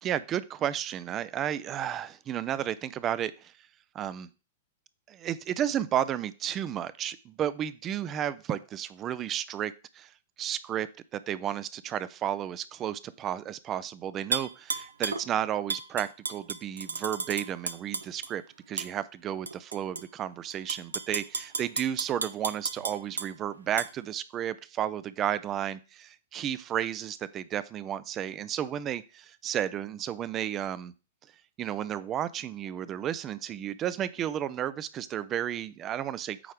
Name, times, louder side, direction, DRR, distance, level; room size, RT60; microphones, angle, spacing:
voice 1, 0.0-3.5 3.9-4.3 5.1-10.1 10.4-10.9 11.1-18.4 18.7-30.9 31.6-36.5, right 10 dB, 30° right, 16 dB, 0.5 m, -32 dB
Tap / Glass, 14.3-15.2 15.7-18.3 18.8-18.9 19.5-20.0 20.5-23.3 23.8-23.9, right 4 dB, 75° right, 0.6 m, -33 dB
8.6 x 3.3 x 5.0 m, 0.32 s
figure-of-eight pair, 100°, 0 cm